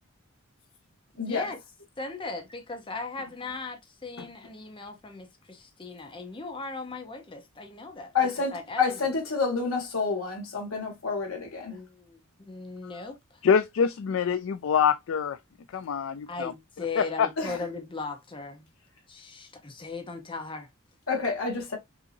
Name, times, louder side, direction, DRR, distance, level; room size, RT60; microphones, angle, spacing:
voice 1, 1.1-1.6 2.0-8.1 8.4-9.1 11.7-13.4 16.3-18.7 19.1-20.7, left 3 dB, 25° left, 0.8 m, -38 dB
voice 2, 8.1-11.8 17.4-17.6 21.1-21.8, left 5 dB, 90° left, 2.1 m, -28 dB
voice 3, 13.4-15.4 15.7-16.5 17.0-17.3, left 7 dB, 65° left, 0.4 m, -25 dB
5.5 x 2.8 x 2.6 m
head